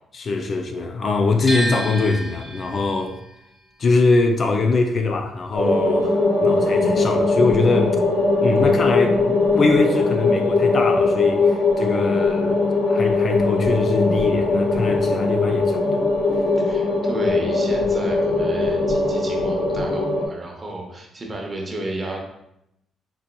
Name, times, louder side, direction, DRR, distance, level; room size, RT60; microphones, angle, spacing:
voice 1, 0.1-3.2 3.8-8.0 8.4-12.6 12.9-16.1, left 3 dB, 45° left, 0.3 m, -22 dB
sound 1, 1.5-7.5 7.8-9.1, right 1 dB, 20° left, 0.8 m, -33 dB
sound 2, 5.5-20.3, left 3 dB, 85° left, 0.6 m, -20 dB
voice 2, 12.0-12.4 16.6-22.2, right 2 dB, 30° right, 0.8 m, -33 dB
3.8 x 2.9 x 2.2 m
cardioid pair, 90°, 0 cm